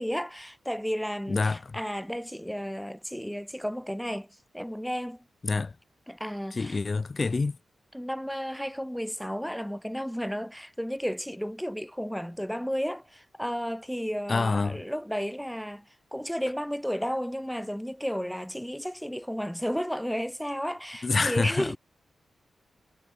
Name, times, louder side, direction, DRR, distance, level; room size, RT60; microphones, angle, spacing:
voice 1, 0.0-5.3 6.1-6.8 7.9-21.8, equal, ahead, 7.5 m, -33 dB
voice 2, 1.3-1.8 5.4-5.8 6.5-7.6 14.3-14.8 21.0-21.8, left 3 dB, 35° left, 5.7 m, -27 dB
wide cardioid pair, 120°, 0 cm